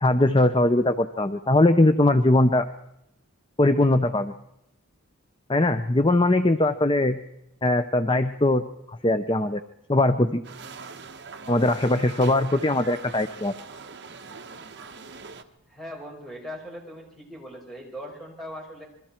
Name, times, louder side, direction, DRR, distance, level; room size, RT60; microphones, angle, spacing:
voice 1, 0.0-2.7 3.6-4.3 5.5-7.2 7.6-8.6 9.0-9.6 9.9-10.4 11.5-13.5, left 2 dB, 20° left, 10 dB, 0.7 m, -20 dB
sound 1, 10.4-15.4, right 4 dB, 50° right, 1.3 m, -42 dB
voice 2, 15.7-18.9, equal, ahead, -1 dB, 5.7 m, -39 dB
27.0 x 22.5 x 4.5 m, 0.83 s
head